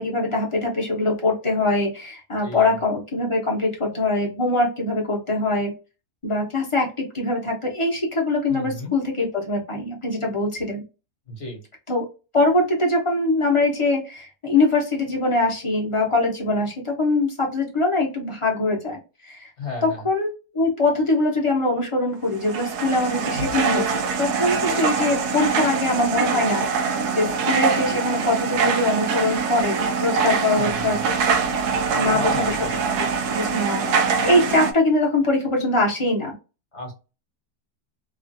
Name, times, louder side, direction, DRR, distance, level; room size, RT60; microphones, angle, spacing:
voice 1, 0.0-5.7 6.2-10.8 11.9-12.0 12.3-19.5 19.8-23.8 24.2-31.0 31.9-32.6 33.3-36.3, left 2 dB, 25° left, -1 dB, 0.7 m, -23 dB
voice 2, 2.4-2.8 8.5-8.9 11.3-11.6 19.6-20.0 30.5-31.0 32.1-32.8 36.7-36.9, left 2 dB, 50° left, 1 dB, 1.3 m, -33 dB
sound 1, 22.3-34.7, right 5 dB, 80° right, 1.2 m, -23 dB
3.2 x 2.4 x 2.6 m, 0.31 s
omnidirectional pair, 1.7 m